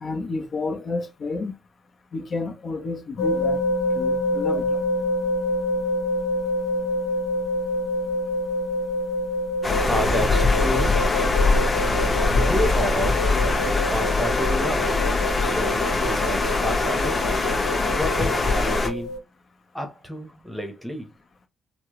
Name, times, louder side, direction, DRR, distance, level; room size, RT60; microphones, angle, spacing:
voice 1, 0.0-1.5 2.1-3.6 3.9-4.8, left 3 dB, 50° left, 1.0 m, -30 dB
sound 1, 3.2-19.2, left 1 dB, 75° left, 1.1 m, -27 dB
sound 2, 9.6-18.9, left 3 dB, 25° left, 1.3 m, -22 dB
voice 2, 9.8-11.2 12.4-15.0 15.4-17.4 17.9-19.2 19.7-21.1, equal, 5° right, 1.0 m, -30 dB
4.3 x 2.2 x 3.1 m
cardioid pair, 90°, 0 cm